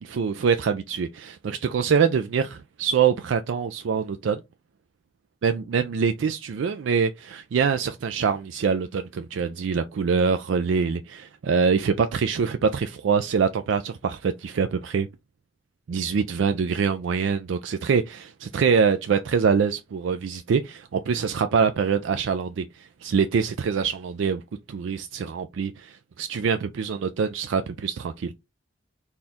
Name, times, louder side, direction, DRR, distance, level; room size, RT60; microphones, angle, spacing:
voice 1, 0.0-4.4 5.4-15.1 15.9-24.4 24.7-28.3, right 6 dB, 65° right, 0.4 m, -24 dB
4.2 x 2.3 x 3.5 m
head